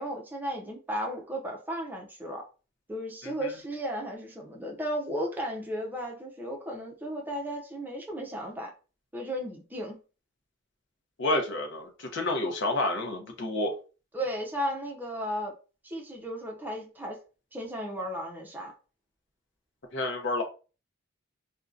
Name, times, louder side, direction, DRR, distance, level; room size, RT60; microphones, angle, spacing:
voice 1, 0.0-2.4 2.9-8.7 9.1-10.0 14.1-15.5 15.8-17.2 17.5-18.7, equal, 10° right, 0.5 m, -34 dB
voice 2, 11.2-13.7 19.9-20.4, left 2 dB, 55° left, 0.7 m, -29 dB
2.6 x 2.2 x 2.4 m
head